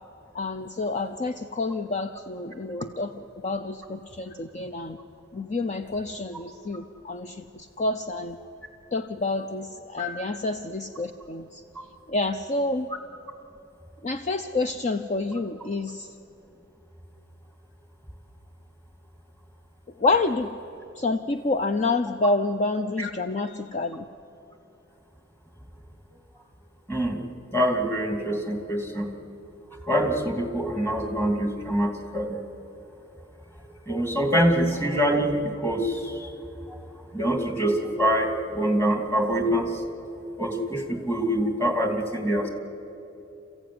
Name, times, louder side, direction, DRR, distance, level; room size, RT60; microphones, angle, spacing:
voice 1, 0.3-5.0 5.3-8.4 8.9-11.6 12.1-12.9 14.0-16.1 20.0-20.6 21.0-24.0, left 3 dB, 35° left, 8 dB, 0.6 m, -28 dB
voice 2, 26.9-27.2 27.5-29.1 29.9-32.4 33.9-36.3 37.1-39.8 40.4-42.5, equal, 10° left, 4 dB, 2.5 m, -25 dB
28.0 x 15.5 x 9.6 m, 2.9 s
head